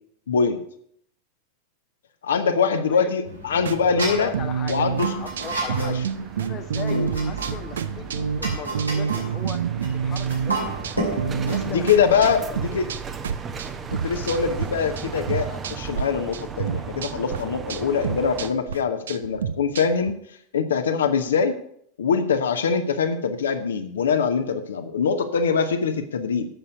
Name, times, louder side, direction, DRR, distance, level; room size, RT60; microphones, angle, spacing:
voice 1, 0.3-0.6 2.2-4.3 4.7-5.1 5.8-5.9 6.9-7.1 11.6-12.8 13.9-20.1 20.5-21.6 22.0-26.5, left 6 dB, 65° left, 7 dB, 0.9 m, -23 dB
sound 1, 3.2-11.6, right 1 dB, 85° right, 2.8 m, -33 dB
voice 2, 3.5-4.9 5.2-6.1 6.4-9.6 9.9-10.9 11.3-12.9, left 7 dB, 30° left, 8 dB, 0.8 m, -38 dB
sound 2, 3.7-14.7 15.0-16.0 16.3-20.1, right 7 dB, 65° right, 0.5 m, -29 dB
sound 3, 4.0-18.5, right 6 dB, 20° right, 0.8 m, -37 dB
8.0 x 6.6 x 7.9 m, 0.68 s
figure-of-eight pair, 90°, 0 cm